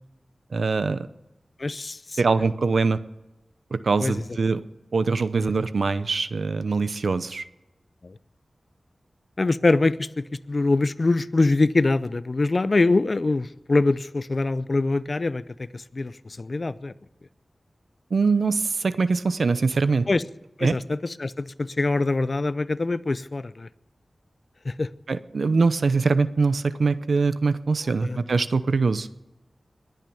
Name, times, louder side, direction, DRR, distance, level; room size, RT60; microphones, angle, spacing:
voice 1, 0.5-1.1 2.2-3.0 3.7-4.6 4.9-7.4 18.1-20.1 20.6-20.8 25.1-29.1, right 4 dB, 75° right, 13 dB, 0.8 m, -23 dB
voice 2, 1.6-2.2 4.0-4.2 5.4-5.5 8.0-8.2 9.4-16.9 20.1-20.2 20.6-23.7 24.6-24.9 27.8-28.2, left 3 dB, 45° left, 16 dB, 0.6 m, -24 dB
21.5 x 9.2 x 7.1 m, 1.0 s
wide cardioid pair, 85°, 0 cm